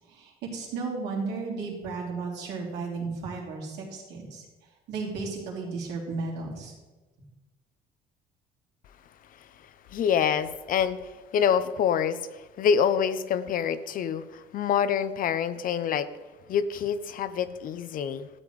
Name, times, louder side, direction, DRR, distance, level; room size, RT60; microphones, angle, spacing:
voice 1, 0.1-4.4 4.9-6.7, right 4 dB, 85° right, -3 dB, 3.0 m, -34 dB
voice 2, 9.3-16.1 16.5-18.3, left 8 dB, 55° left, 13 dB, 0.6 m, -27 dB
13.0 x 7.8 x 3.1 m, 1.2 s
cardioid pair, 110°, 17 cm